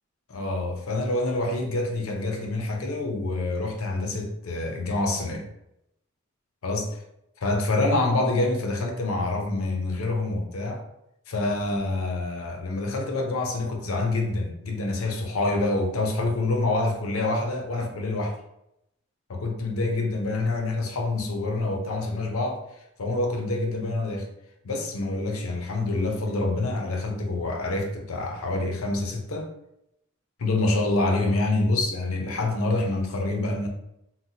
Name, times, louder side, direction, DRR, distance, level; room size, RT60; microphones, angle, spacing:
voice 1, 0.3-5.5 6.6-7.0 7.4-10.8 11.3-18.4 19.3-22.6 23.0-24.3 24.6-29.5 30.4-33.7, left 2 dB, 90° left, 0.6 m, -26 dB
3.9 x 2.1 x 2.7 m
head